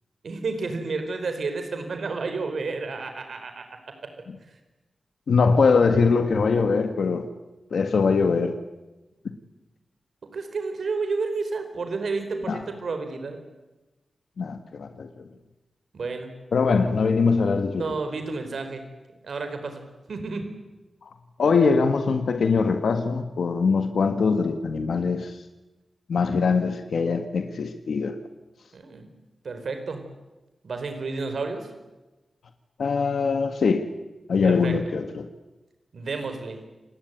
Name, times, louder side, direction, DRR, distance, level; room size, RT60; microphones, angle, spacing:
voice 1, 0.2-4.2 10.2-13.4 15.9-16.3 17.8-18.9 19.2-20.5 28.7-29.1 29.4-30.0 30.6-31.7 34.5-34.8 35.9-36.6, right 4 dB, 65° right, 7 dB, 4.6 m, -31 dB
voice 2, 5.3-7.3 7.7-8.6 12.5-12.6 14.4-15.3 16.5-18.0 21.0-21.1 21.4-25.4 26.1-28.2 32.8-33.9 34.3-35.3, left 4 dB, 85° left, 7 dB, 1.8 m, -22 dB
29.0 x 19.5 x 9.3 m, 1.1 s
wide cardioid pair, 165°, 0 cm